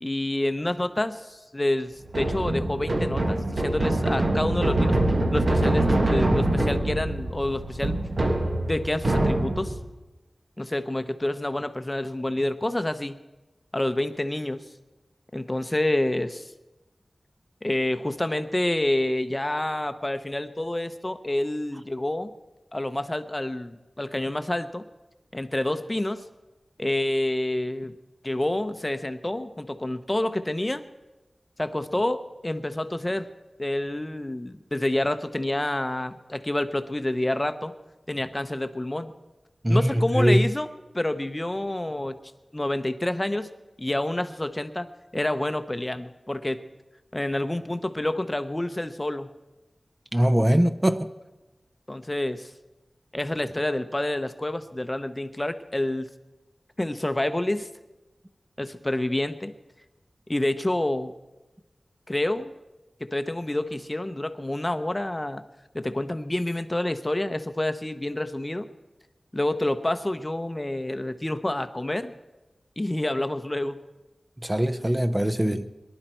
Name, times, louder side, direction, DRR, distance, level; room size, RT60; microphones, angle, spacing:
voice 1, 0.0-5.0 5.3-8.0 8.7-9.8 10.6-13.2 13.7-14.6 15.3-16.5 17.6-22.3 22.7-24.8 25.3-26.2 26.8-27.9 28.2-30.8 31.6-33.3 33.6-37.7 38.1-39.1 39.7-40.7 40.9-42.2 42.5-43.5 43.8-44.9 45.1-46.6 47.1-49.3 51.9-52.5 53.1-56.1 56.8-57.7 58.6-59.5 60.3-61.1 62.1-62.5 63.0-65.4 65.7-68.7 69.3-72.1 72.8-73.8, left 1 dB, 25° left, 0.8 m, -28 dB
sound 1, 2.1-9.8, right 1 dB, 55° right, 1.6 m, -24 dB
voice 2, 39.6-40.4 50.1-51.1 74.4-75.7, equal, 20° right, 0.7 m, -22 dB
23.0 x 11.5 x 4.5 m
wide cardioid pair, 75°, 0 cm